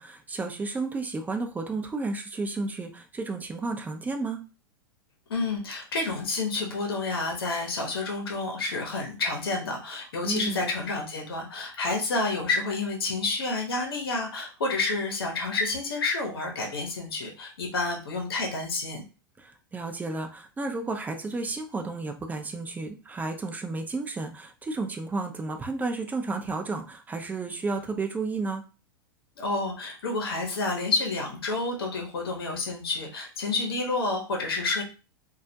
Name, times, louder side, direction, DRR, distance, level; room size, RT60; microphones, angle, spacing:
voice 1, 0.0-4.4 10.3-10.6 19.4-28.6, right 3 dB, 15° right, 5 dB, 0.4 m, -32 dB
voice 2, 5.3-19.0 29.4-34.8, left 3 dB, 85° left, 1 dB, 0.7 m, -29 dB
2.2 x 2.1 x 2.7 m, 0.32 s
hypercardioid pair, 105°, 12 cm